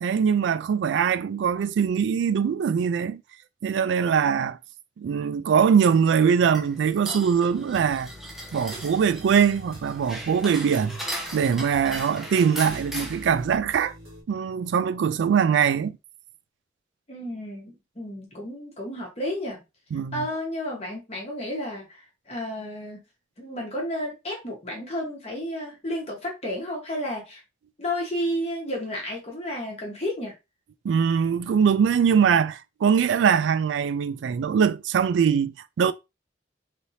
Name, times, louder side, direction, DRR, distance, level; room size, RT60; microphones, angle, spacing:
voice 1, 0.0-3.2 3.6-4.6 5.0-8.1 8.5-11.0 11.3-13.9 14.3-16.0 19.9-20.3 30.8-35.9, right 7 dB, 85° right, 0.3 m, -22 dB
sound 1, 5.9-13.5, equal, ahead, 0.6 m, -38 dB
sound 2, 7.7-14.2, left 1 dB, 60° right, 1.8 m, -45 dB
voice 2, 17.1-19.6 20.1-23.0 23.4-27.4 27.8-30.3, left 1 dB, 35° left, 1.1 m, -32 dB
3.3 x 2.7 x 2.7 m
head